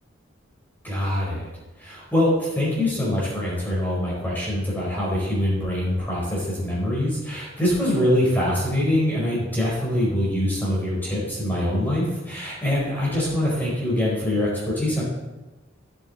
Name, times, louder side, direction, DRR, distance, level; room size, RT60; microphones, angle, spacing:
voice 1, 0.8-1.5 1.8-15.0, left 1 dB, 10° left, -7 dB, 4.4 m, -24 dB
16.0 x 7.9 x 4.2 m, 1.1 s
head